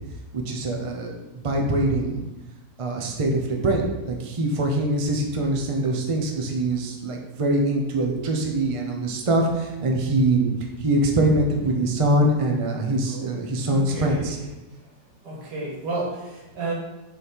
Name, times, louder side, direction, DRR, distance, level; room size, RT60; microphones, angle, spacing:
voice 1, 0.3-1.2 1.4-2.2 2.8-10.5 10.8-14.4, right 1 dB, 35° right, 1 dB, 0.5 m, -23 dB
voice 2, 13.7-14.2 15.2-16.7, right 2 dB, 75° right, -2 dB, 2.1 m, -31 dB
6.6 x 4.2 x 4.6 m, 1.0 s
omnidirectional pair, 1.9 m